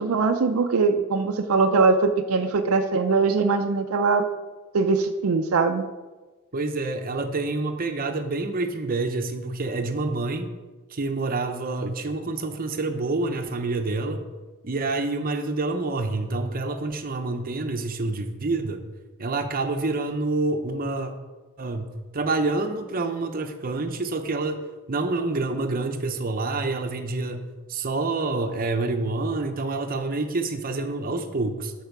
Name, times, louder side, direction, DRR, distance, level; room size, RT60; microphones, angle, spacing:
voice 1, 0.0-4.3 4.7-5.8, right 4 dB, 75° right, 6 dB, 0.5 m, -21 dB
voice 2, 6.5-10.5 10.9-14.2 14.6-18.8 19.2-21.1 21.6-24.6 24.9-27.4 27.7-31.7, right 3 dB, 45° right, 6 dB, 0.8 m, -27 dB
12.0 x 4.6 x 4.6 m, 1.3 s
head